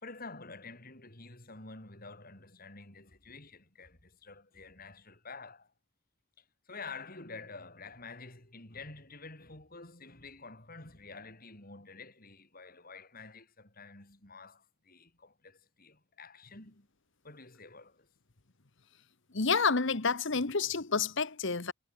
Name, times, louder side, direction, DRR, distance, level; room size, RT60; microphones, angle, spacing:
voice 1, 0.0-5.7 6.4-16.9 17.2-18.1, left 4 dB, 45° left, 5.0 m, -49 dB
voice 2, 19.3-21.7, left 4 dB, 60° left, 1.3 m, -29 dB
head